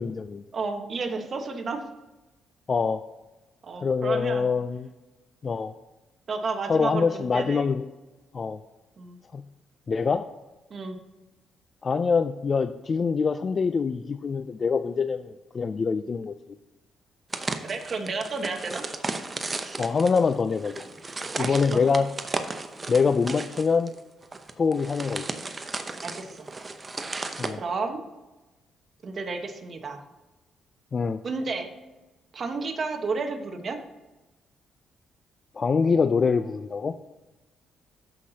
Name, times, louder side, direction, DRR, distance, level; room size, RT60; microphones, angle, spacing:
voice 1, 0.0-0.4 2.7-3.0 3.8-4.9 5.4-5.7 6.7-7.8 8.3-8.6 9.3-9.4 9.9-10.3 11.8-16.3 19.8-20.7 21.4-22.1 22.9-23.9 24.6-25.3 27.4-27.6 30.9-31.2 35.6-37.0, left 5 dB, 40° left, 10 dB, 0.4 m, -24 dB
voice 2, 0.5-1.8 3.6-4.5 6.3-7.7 9.0-9.2 10.7-11.0 17.5-18.8 21.4-21.8 26.0-26.5 27.6-28.0 29.0-30.0 31.2-31.7 32.3-33.8, right 4 dB, 45° right, 5 dB, 1.2 m, -32 dB
sound 1, 17.3-27.5, right 3 dB, 25° right, 0.8 m, -35 dB
13.5 x 5.8 x 2.8 m, 1.1 s
cardioid pair, 90°, 0 cm